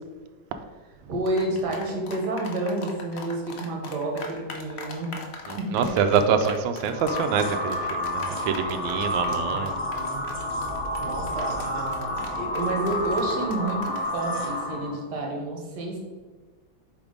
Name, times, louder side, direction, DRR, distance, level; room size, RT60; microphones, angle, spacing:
voice 1, 1.1-5.2 5.6-5.9 9.2-10.2 11.0-16.0, right 2 dB, 60° right, 0 dB, 1.8 m, -30 dB
sound 1, 1.3-14.1, left 4 dB, 75° left, 0.6 m, -40 dB
voice 2, 5.5-9.8, right 6 dB, 75° right, 7 dB, 1.3 m, -25 dB
sound 2, 6.9-15.0, left 1 dB, 25° left, 1.1 m, -30 dB
5.2 x 3.7 x 4.9 m, 1.3 s
omnidirectional pair, 2.2 m